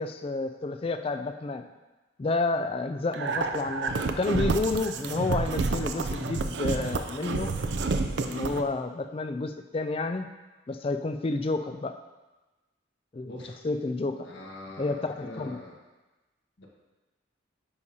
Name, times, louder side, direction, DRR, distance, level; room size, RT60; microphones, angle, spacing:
voice 1, 0.0-1.6 2.2-7.5 8.3-10.3 10.7-11.9 13.1-13.3 13.6-14.3 14.8-15.6, left 3 dB, 30° left, 8 dB, 0.3 m, -30 dB
sound 1, 3.1-8.6, right 3 dB, 60° right, 0.5 m, -29 dB
voice 2, 13.3-13.7 14.2-15.8 16.6-16.7, left 1 dB, 70° left, -2 dB, 1.4 m, -43 dB
9.5 x 5.3 x 2.8 m, 1.1 s
head